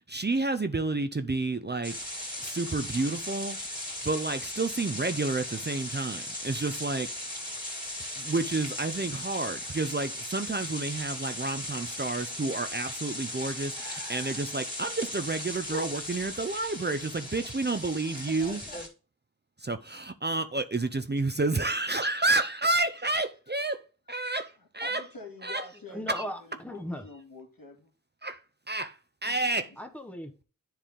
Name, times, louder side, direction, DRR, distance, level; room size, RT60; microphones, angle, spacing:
voice 1, 0.0-2.0 2.4-3.6 4.0-7.1 8.2-18.6 19.6-23.8 24.1-25.0 25.4-25.6 26.1-26.2 28.2-28.4 28.7-29.7, right 3 dB, 30° right, 0.5 m, -30 dB
sound 1, 1.8-18.9, left 1 dB, 25° left, 2.2 m, -37 dB
voice 2, 24.8-27.9 29.2-29.8, left 3 dB, 75° left, 2.0 m, -47 dB
voice 3, 25.9-27.0 29.8-30.4, equal, 5° left, 1.1 m, -37 dB
10.0 x 3.4 x 3.6 m
wide cardioid pair, 40°, 35 cm